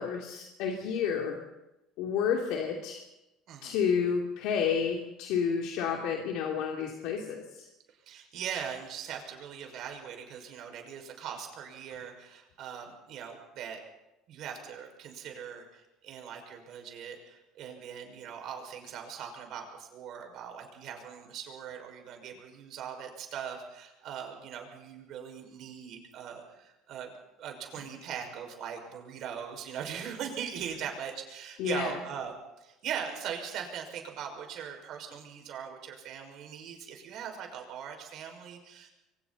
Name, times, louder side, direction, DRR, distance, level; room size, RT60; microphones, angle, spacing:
voice 1, 0.0-1.4 2.0-3.0 3.6-7.7 31.6-31.9, left 7 dB, 70° left, 1 dB, 3.1 m, -30 dB
voice 2, 3.5-3.8 8.1-13.8 14.3-27.1 27.4-38.9, right 8 dB, 50° right, 3 dB, 5.9 m, -40 dB
27.0 x 24.0 x 4.3 m, 0.94 s
cardioid pair, 145°, 0 cm